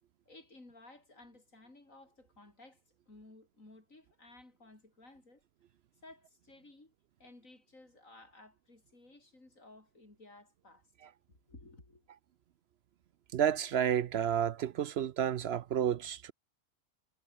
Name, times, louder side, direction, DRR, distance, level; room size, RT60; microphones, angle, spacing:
voice 1, 0.3-5.4 6.0-6.9 7.2-10.9 11.3-12.1, left 2 dB, 70° left, 5.6 m, -57 dB
voice 2, 13.3-16.3, right 9 dB, 60° right, 0.7 m, -31 dB
omnidirectional pair, 1.4 m